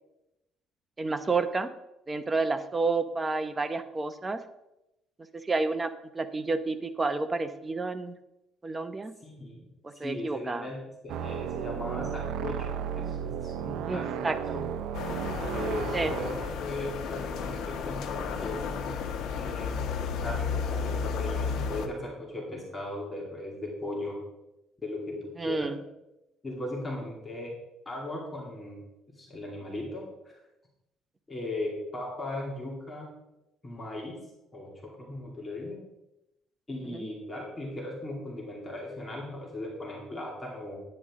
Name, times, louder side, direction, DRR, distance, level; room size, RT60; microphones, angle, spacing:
voice 1, 1.0-1.7 2.1-4.4 5.3-8.2 8.6-9.1 9.8-10.7 13.9-14.4 15.9-16.1 25.4-25.8 36.9-37.1, right 3 dB, 20° right, 9 dB, 0.8 m, -30 dB
voice 2, 9.2-9.7 10.0-14.6 15.5-18.7 19.4-19.8 20.2-24.2 24.8-25.7 26.4-27.5 27.9-28.8 29.2-30.1 31.3-33.1 33.6-34.2 34.5-35.8 36.7-40.8, left 1 dB, 20° left, -2 dB, 2.6 m, -38 dB
sound 1, 11.1-16.5, right 9 dB, 75° right, 0.6 m, -34 dB
sound 2, 14.9-21.9, left 5 dB, 70° left, 1.3 m, -33 dB
10.0 x 10.0 x 3.7 m, 0.91 s
cardioid pair, 115°, 0 cm